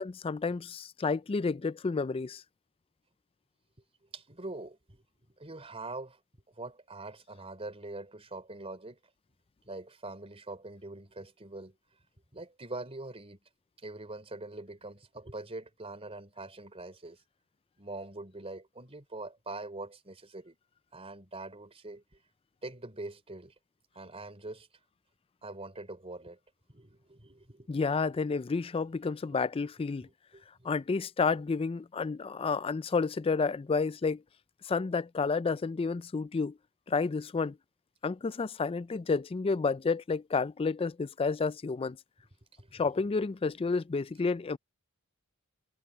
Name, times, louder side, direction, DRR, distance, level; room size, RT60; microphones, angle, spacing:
voice 1, 0.0-2.4 27.7-30.1 30.6-34.2 34.6-36.6 36.9-37.6 38.0-42.0 42.7-44.6, left 4 dB, 25° left, 0.3 m, -30 dB
voice 2, 4.1-5.0 5.4-6.2 6.5-9.0 9.7-11.8 12.3-13.4 13.8-17.2 17.8-20.6 20.9-22.0 22.6-23.5 23.9-24.7 25.4-26.4 26.7-27.8 29.3-29.4 30.3-30.7 42.6-43.1, right 2 dB, 25° right, 4.0 m, -43 dB
head